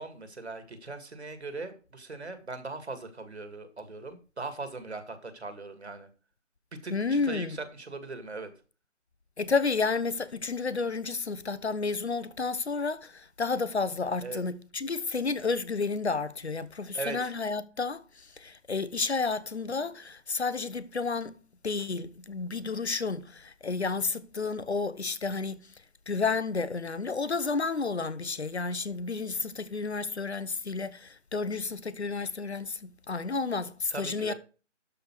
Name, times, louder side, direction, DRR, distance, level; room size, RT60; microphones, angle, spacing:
voice 1, 0.0-6.1 6.8-8.5 14.2-14.4 16.9-17.3 33.9-34.3, right 3 dB, 60° right, 2.1 m, -39 dB
voice 2, 6.9-7.6 9.4-21.4 21.6-25.7 26.1-34.3, left 4 dB, 60° left, 1.0 m, -31 dB
12.5 x 5.1 x 4.6 m
figure-of-eight pair, 155°, 37 cm